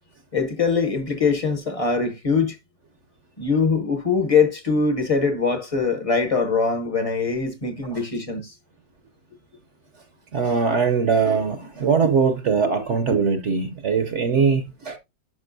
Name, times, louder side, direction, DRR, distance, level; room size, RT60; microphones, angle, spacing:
voice 1, 0.3-2.6 3.4-8.5, left 5 dB, 35° left, 0.6 m, -22 dB
voice 2, 10.3-15.0, right 5 dB, 55° right, 0.8 m, -21 dB
11.0 x 5.3 x 2.6 m
omnidirectional pair, 1.9 m